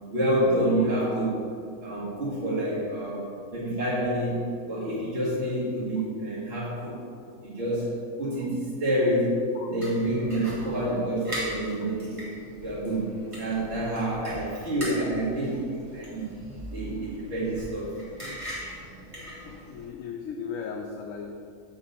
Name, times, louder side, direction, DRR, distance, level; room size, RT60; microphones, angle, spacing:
voice 1, 0.1-1.4 1.8-7.0 7.4-9.4 9.7-12.3 12.6-13.1 13.4-16.3 16.7-17.9 18.6-18.7, right 1 dB, 40° right, -9 dB, 1.8 m, -28 dB
sound 1, 9.8-19.8, equal, 20° right, 1.7 m, -40 dB
voice 2, 19.4-21.3, left 6 dB, 65° left, 2 dB, 0.9 m, -37 dB
6.8 x 5.2 x 5.6 m, 2.3 s
omnidirectional pair, 1.6 m